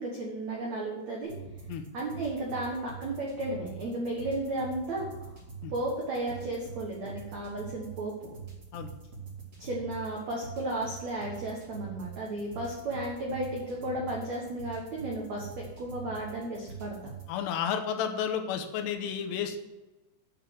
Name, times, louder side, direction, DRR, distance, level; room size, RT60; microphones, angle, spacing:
voice 1, 0.0-1.3 1.9-5.3 5.7-8.3 9.6-17.1, right 1 dB, 85° right, -2 dB, 1.5 m, -34 dB
sound 1, 1.2-17.3, right 6 dB, 35° right, 1.2 m, -45 dB
voice 2, 17.3-19.6, left 8 dB, 80° left, 6 dB, 2.6 m, -32 dB
8.6 x 6.3 x 7.5 m, 1.1 s
omnidirectional pair, 5.6 m